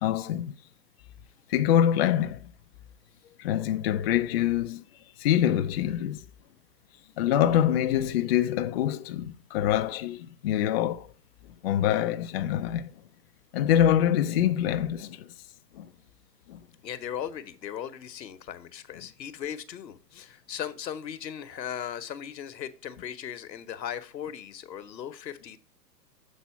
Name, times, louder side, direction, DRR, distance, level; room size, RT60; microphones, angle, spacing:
voice 1, 0.0-0.5 1.5-2.5 3.4-4.8 5.2-6.2 7.2-11.1 11.6-12.9 13.5-15.3 15.7-15.9 16.5-16.6, left 10 dB, 40° left, 0.4 m, -25 dB
voice 2, 16.8-25.6, left 9 dB, 85° left, 1.1 m, -37 dB
7.4 x 4.1 x 5.7 m
hypercardioid pair, 130°, 50 cm